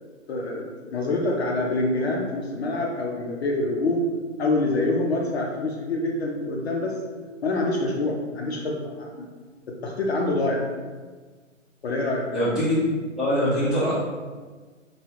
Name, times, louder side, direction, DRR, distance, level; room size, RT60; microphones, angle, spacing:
voice 1, 0.3-4.1 4.4-7.0 7.4-9.3 9.7-10.6 11.8-12.3, left 2 dB, 55° left, -1 dB, 0.5 m, -26 dB
voice 2, 12.3-12.8 13.2-13.9, equal, ahead, -14 dB, 0.8 m, -23 dB
3.3 x 2.2 x 2.9 m, 1.4 s
figure-of-eight pair, 125°, 39 cm